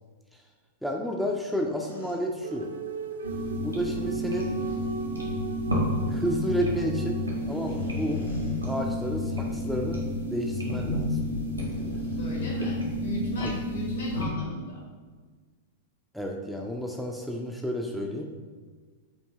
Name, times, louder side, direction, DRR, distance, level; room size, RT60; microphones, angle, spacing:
voice 1, 0.8-2.7 3.6-4.5 6.1-7.2 7.5-8.3 8.6-10.0 10.3-11.2 13.4-13.5 16.1-18.2, equal, ahead, 0 dB, 0.4 m, -31 dB
sound 1, 1.8-2.1 4.2-4.9 7.4-9.1 9.5-9.6 10.2-10.4 11.6-13.4, left 1 dB, 85° left, 1.3 m, -46 dB
sound 2, 2.4-7.7, right 5 dB, 65° right, 0.4 m, -38 dB
sound 3, 3.2-14.2, left 1 dB, 90° right, 1.1 m, -30 dB
voice 2, 12.2-14.8, left 2 dB, 65° left, -3 dB, 1.5 m, -35 dB
5.2 x 2.7 x 3.7 m, 1.5 s
figure-of-eight pair, 95°, 0 cm